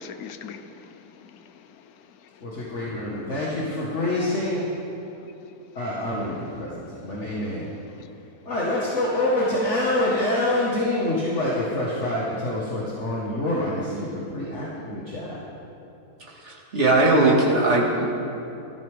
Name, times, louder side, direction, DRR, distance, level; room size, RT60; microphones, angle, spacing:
voice 1, 0.0-2.4 5.2-5.3 7.1-7.2 8.0-8.1, left 5 dB, 75° left, 9 dB, 1.2 m, -43 dB
voice 2, 2.4-4.7 5.8-7.7 8.5-15.4, left 1 dB, 50° left, -6 dB, 2.1 m, -26 dB
voice 3, 16.4-18.0, right 2 dB, 45° right, -3 dB, 2.4 m, -19 dB
19.0 x 13.5 x 3.7 m, 2.9 s
omnidirectional pair, 1.6 m